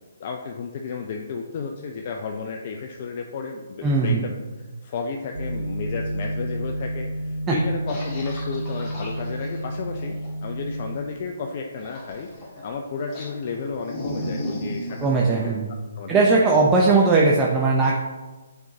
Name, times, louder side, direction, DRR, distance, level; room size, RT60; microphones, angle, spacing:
voice 1, 0.2-10.2 10.4-12.3 12.6-15.5 16.0-16.4, left 5 dB, 45° left, 2 dB, 0.5 m, -33 dB
voice 2, 3.8-4.2 7.5-7.6 15.0-15.7 16.1-18.0, right 3 dB, 15° right, -3 dB, 0.6 m, -19 dB
sound 1, 5.3-11.0, right 1 dB, 90° right, 0.7 m, -30 dB
sound 2, 7.9-10.3 11.8-12.7 13.1-15.1, equal, 20° left, 1.9 m, -35 dB
8.0 x 4.4 x 2.8 m, 1.2 s
figure-of-eight pair, 140°, 0 cm